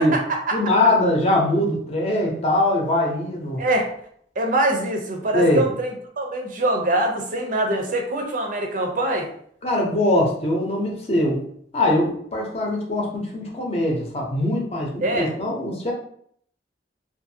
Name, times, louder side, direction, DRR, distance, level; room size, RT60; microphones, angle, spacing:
voice 1, 0.0-0.6 3.6-3.9 4.4-9.3 15.0-15.3, right 1 dB, 50° right, 2 dB, 0.5 m, -24 dB
voice 2, 0.5-3.6 5.3-5.6 9.6-11.4 11.7-15.9, left 1 dB, 35° left, -1 dB, 0.7 m, -22 dB
2.6 x 2.5 x 2.7 m, 0.63 s
head